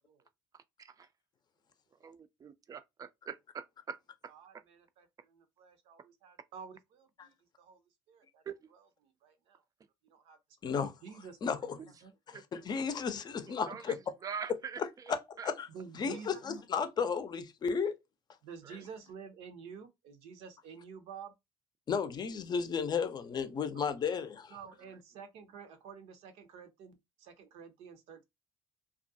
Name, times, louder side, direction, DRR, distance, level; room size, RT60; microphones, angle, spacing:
voice 1, 2.0-4.0 8.5-8.6 11.8-11.9 12.3-12.4 13.7-13.9 14.2-14.8 15.4-15.5 18.7-18.8, right 6 dB, 35° right, 0.4 m, -43 dB
voice 2, 4.3-7.8 8.1-9.6 10.0-10.4 11.0-11.4 11.8-12.1 15.7-16.4 18.4-21.3 23.7-24.2 24.5-28.2, right 6 dB, 70° right, 0.6 m, -50 dB
voice 3, 10.6-11.0 11.4-11.8 12.3-14.0 14.8-15.7 15.9-18.0 21.9-24.5, left 6 dB, 40° left, 0.5 m, -34 dB
2.4 x 2.2 x 2.6 m
hypercardioid pair, 65°, 11 cm